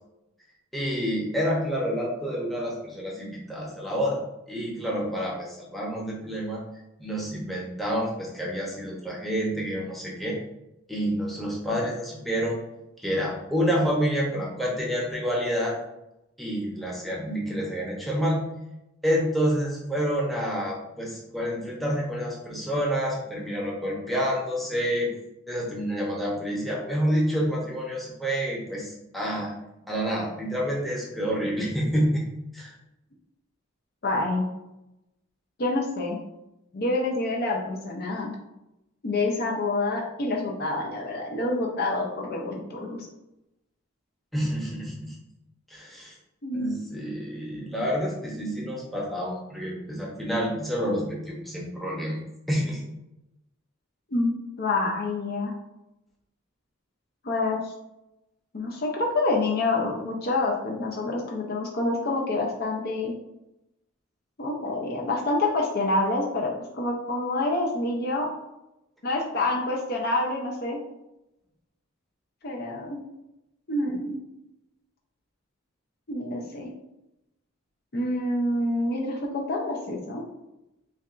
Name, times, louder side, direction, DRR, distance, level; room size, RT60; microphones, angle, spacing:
voice 1, 0.7-4.2 4.5-6.6 7.0-10.4 10.9-12.6 13.0-15.8 16.4-18.5 19.0-25.1 25.5-29.5 29.9-32.2 32.5-32.7 44.3-45.1 45.7-46.1 46.5-52.2 52.5-52.8, equal, ahead, -4 dB, 0.8 m, -28 dB
voice 2, 34.0-34.5 35.6-36.2 36.7-38.3 39.0-43.1 46.4-46.7 54.1-55.5 57.2-57.7 58.5-63.1 64.4-68.3 69.0-70.8 72.4-73.0 73.7-74.2 76.1-76.7 77.9-80.2, left 2 dB, 45° left, 0 dB, 0.5 m, -27 dB
5.7 x 2.3 x 2.5 m, 0.92 s
head